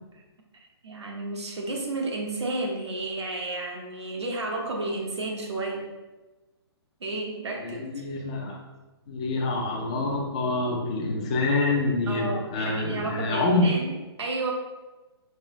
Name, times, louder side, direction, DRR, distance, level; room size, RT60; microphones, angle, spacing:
voice 1, 0.8-5.9 7.0-8.0 12.1-14.5, right 2 dB, 85° right, 1 dB, 1.1 m, -32 dB
voice 2, 7.6-8.6 9.1-13.7, left 2 dB, 15° left, -1 dB, 0.4 m, -26 dB
5.3 x 2.8 x 3.0 m, 1.1 s
hypercardioid pair, 175°, 14 cm